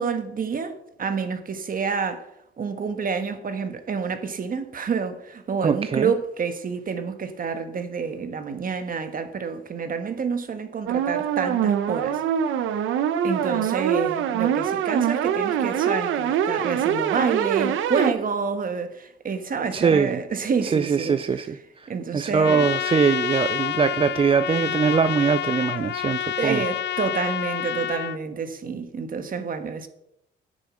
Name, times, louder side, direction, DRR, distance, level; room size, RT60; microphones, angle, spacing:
voice 1, 0.0-2.3 2.6-12.2 13.2-21.2 21.9-22.7 26.4-29.9, right 5 dB, 45° right, 1.3 m, -28 dB
voice 2, 5.6-6.1 19.7-20.2 20.6-26.6, right 6 dB, 30° right, 0.4 m, -22 dB
sound 1, 10.9-18.1, right 9 dB, 85° right, 0.8 m, -24 dB
Trumpet, 22.4-28.2, left 11 dB, 65° left, 0.6 m, -28 dB
9.9 x 7.9 x 6.3 m
cardioid pair, 90°, 20 cm